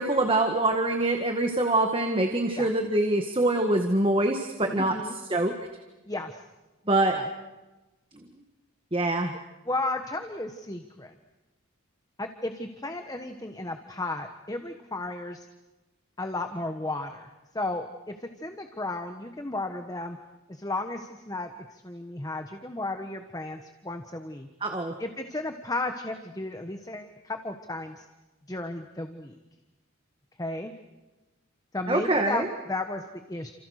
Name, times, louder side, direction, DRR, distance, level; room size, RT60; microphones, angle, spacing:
voice 1, 0.0-5.5 6.9-7.2 8.9-9.4 24.6-24.9 31.9-32.5, right 2 dB, 25° right, 4 dB, 1.7 m, -25 dB
voice 2, 4.7-5.2 6.1-6.4 7.1-7.3 9.7-11.1 12.2-15.5 16.2-20.2 20.5-24.5 25.0-28.0 28.5-29.4 30.4-30.7 31.7-33.5, left 2 dB, 15° left, 6 dB, 1.3 m, -34 dB
30.0 x 27.5 x 6.6 m, 1.1 s
head